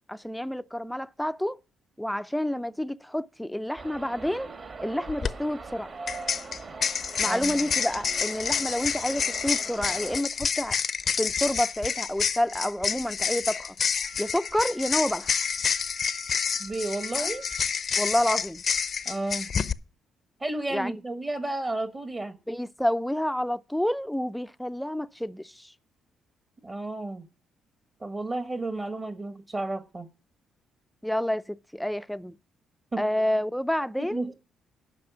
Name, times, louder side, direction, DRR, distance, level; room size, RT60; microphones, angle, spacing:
voice 1, 0.1-1.6 2.0-4.5 4.8-5.9 7.2-10.8 11.2-13.8 14.2-15.4 18.0-18.6 20.7-21.0 22.5-25.7 31.0-32.4 33.0-34.2, left 1 dB, 5° left, 0.5 m, -29 dB
sound 1, 3.8-10.2, right 4 dB, 45° right, 2.0 m, -42 dB
sound 2, 5.1-5.3 6.1-19.7, left 6 dB, 50° left, 0.6 m, -28 dB
voice 2, 7.2-7.6 16.6-17.4 19.0-19.5 20.4-22.4 26.6-27.3 28.0-30.1 32.9-33.0 34.0-34.3, right 2 dB, 30° right, 1.2 m, -32 dB
Wind instrument woodwind instrument, 14.0-17.7, right 9 dB, 75° right, 6.5 m, -52 dB
11.5 x 5.6 x 6.9 m
cardioid pair, 90°, 0 cm